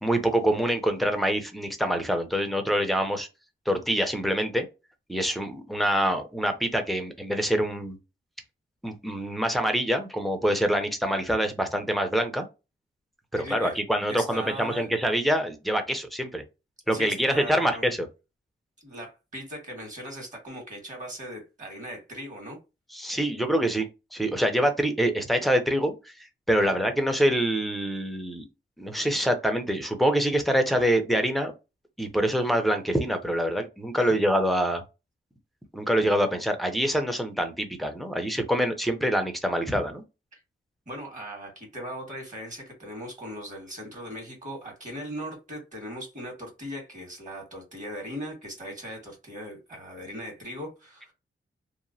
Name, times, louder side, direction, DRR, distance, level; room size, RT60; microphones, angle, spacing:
voice 1, 0.0-3.3 3.7-4.6 5.1-8.0 8.8-12.5 13.3-16.4 16.9-18.1 22.9-23.9 24.1-26.1 26.5-28.5 28.8-31.5 32.0-34.8 35.7-40.0, equal, ahead, 0.6 m, -25 dB
voice 2, 13.4-13.8 14.1-14.9 16.9-17.9 18.8-22.6 26.5-26.7 34.0-34.2 40.3-40.4 40.8-51.1, equal, 35° right, 1.7 m, -39 dB
3.0 x 2.1 x 2.6 m
cardioid pair, 80°, 21 cm